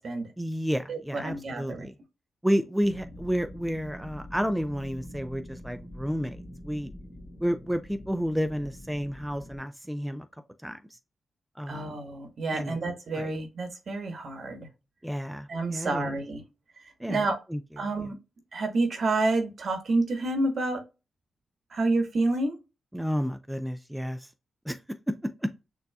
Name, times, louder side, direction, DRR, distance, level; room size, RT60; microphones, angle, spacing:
voice 1, 0.4-1.9 2.4-6.9 7.4-10.3 10.6-10.8 11.6-12.0 12.5-12.8 13.1-13.3 15.0-16.1 17.0-17.2 17.5-17.6 22.9-24.3 24.6-24.8, equal, 5° right, 0.5 m, -31 dB
voice 2, 0.9-1.9 11.7-14.7 15.5-16.4 17.1-17.4 17.8-18.2 18.5-20.8 21.7-22.6, right 2 dB, 60° right, 1.2 m, -29 dB
sound 1, 2.8-9.6, left 1 dB, 30° left, 2.0 m, -45 dB
6.4 x 2.8 x 2.3 m
supercardioid pair, 50°, 0 cm